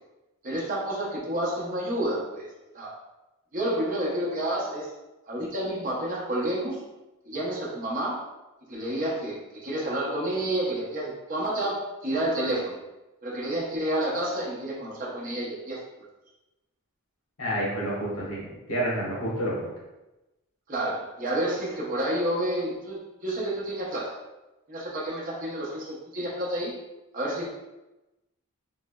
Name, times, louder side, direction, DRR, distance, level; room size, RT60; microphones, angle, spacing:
voice 1, 0.4-2.5 2.7-2.9 3.5-4.9 5.3-6.8 7.2-8.2 8.7-12.8 13.2-15.8 20.7-24.2 24.7-26.8 27.1-27.5, right 1 dB, 40° right, -4 dB, 0.7 m, -29 dB
voice 2, 17.4-19.7, right 1 dB, 75° left, -5 dB, 1.1 m, -29 dB
3.2 x 3.0 x 2.2 m, 1.0 s
head